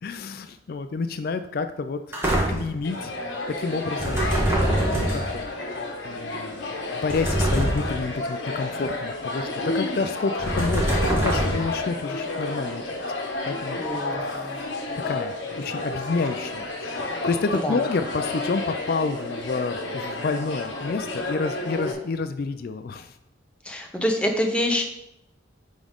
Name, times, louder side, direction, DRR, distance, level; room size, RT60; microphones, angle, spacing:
voice 1, 0.0-2.2 2.5-3.1 3.5-4.2 4.9-5.5 6.0-13.0 13.5-14.7 15.1-16.9 17.3-23.1, left 4 dB, 50° left, 9 dB, 0.4 m, -29 dB
sound 1, 2.1-2.8 4.0-5.4 7.1-8.1 10.4-11.8, right 1 dB, 15° right, 1.3 m, -24 dB
sound 2, 2.8-21.9, left 2 dB, 75° left, 1.2 m, -31 dB
voice 2, 13.8-14.6 17.5-17.8 23.6-24.8, equal, 5° left, 2 dB, 0.7 m, -26 dB
9.0 x 3.7 x 3.6 m, 0.84 s
head